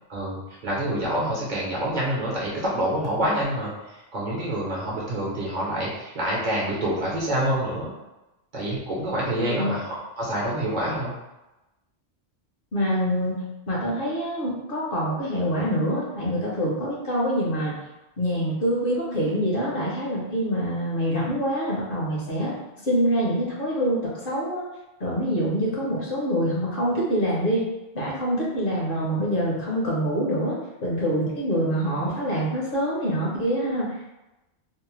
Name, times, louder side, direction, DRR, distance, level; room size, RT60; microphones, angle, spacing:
voice 1, 0.1-7.9 8.5-11.1, right 1 dB, 50° right, -5 dB, 0.9 m, -27 dB
voice 2, 9.4-9.7 12.7-17.7 18.2-22.5 22.8-24.6 25.0-27.7 27.9-30.6 30.8-34.1, equal, 60° left, -4 dB, 0.9 m, -25 dB
2.7 x 2.0 x 3.0 m, 0.99 s
omnidirectional pair, 1.1 m